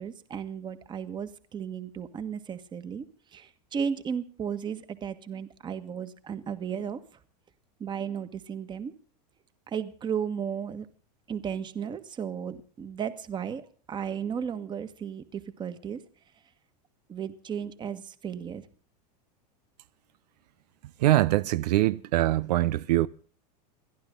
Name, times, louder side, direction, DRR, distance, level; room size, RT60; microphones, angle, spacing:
voice 1, 0.0-3.0 3.3-7.0 7.8-8.9 9.7-10.9 11.3-16.0 17.1-18.6, right 7 dB, 20° right, 1.6 m, -34 dB
voice 2, 21.0-23.1, right 15 dB, 75° right, 0.7 m, -23 dB
30.0 x 11.5 x 3.8 m
supercardioid pair, 145°, 21 cm